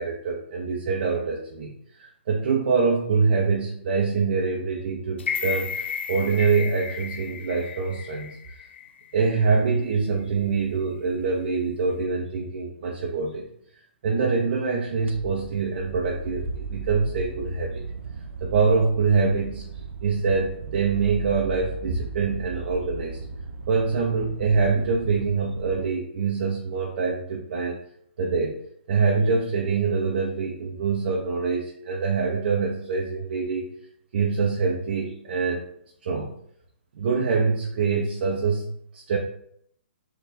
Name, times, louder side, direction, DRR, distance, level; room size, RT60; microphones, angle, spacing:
voice 1, 0.0-8.4 9.1-13.5 14.0-17.9 18.4-19.6 20.0-23.2 23.7-27.8 28.2-28.6 28.9-33.6 34.1-35.6 36.0-36.3 36.9-38.7 38.9-39.2, right 4 dB, 55° right, -1 dB, 0.8 m, -25 dB
sound 1, 5.2-9.3 9.7-9.8, left 7 dB, 65° left, 0.6 m, -33 dB
sound 2, 15.0-25.9, right 4 dB, 80° right, 0.4 m, -37 dB
3.9 x 2.4 x 3.9 m, 0.67 s
hypercardioid pair, 130°, 6 cm